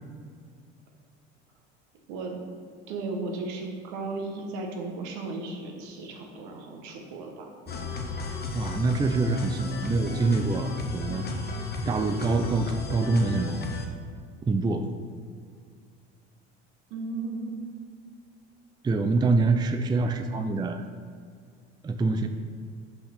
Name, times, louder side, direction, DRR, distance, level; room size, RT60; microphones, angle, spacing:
voice 1, 2.9-7.9 16.9-17.6, right 3 dB, 70° right, 2 dB, 1.2 m, -35 dB
sound 1, 7.7-13.9, left 2 dB, 30° left, 0.9 m, -33 dB
voice 2, 8.5-11.3 11.9-13.7 14.5-14.9 18.8-20.8 21.8-22.3, right 3 dB, 15° right, 7 dB, 0.4 m, -25 dB
5.8 x 5.7 x 4.3 m, 2.1 s
hypercardioid pair, 75°, 30 cm